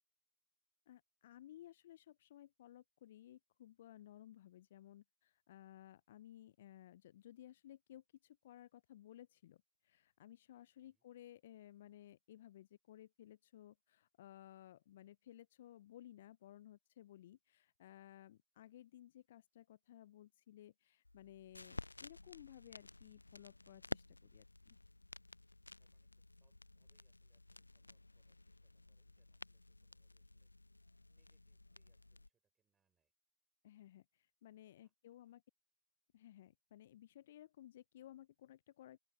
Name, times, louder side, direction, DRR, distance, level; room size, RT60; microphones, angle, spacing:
voice 1, 0.9-9.6 9.9-24.8 33.6-34.0 34.4-35.4 36.1-39.0, left 12 dB, 40° left, 0.6 m, -58 dB
sound 1, 21.0-32.3, left 2 dB, 85° left, 0.4 m, -53 dB
voice 2, 25.8-30.5 31.1-33.1 34.6-35.4, right 7 dB, 10° right, 6.0 m, -87 dB
open air
figure-of-eight pair, 135°, 0 cm